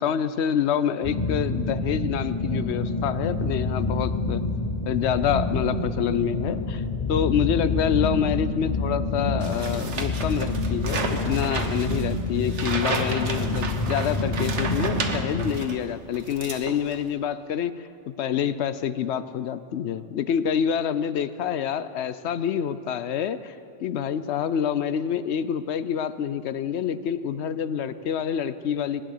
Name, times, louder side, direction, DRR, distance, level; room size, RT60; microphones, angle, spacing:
voice 1, 0.0-4.4 4.8-6.8 7.1-17.7 18.1-29.0, left 8 dB, 70° left, 14 dB, 0.9 m, -27 dB
sound 1, 1.0-15.5, left 3 dB, 35° left, 1.0 m, -27 dB
sound 2, 9.4-15.8 16.1-17.1, right 4 dB, 75° right, 1.5 m, -32 dB
20.0 x 10.0 x 6.6 m, 2.5 s
omnidirectional pair, 1.2 m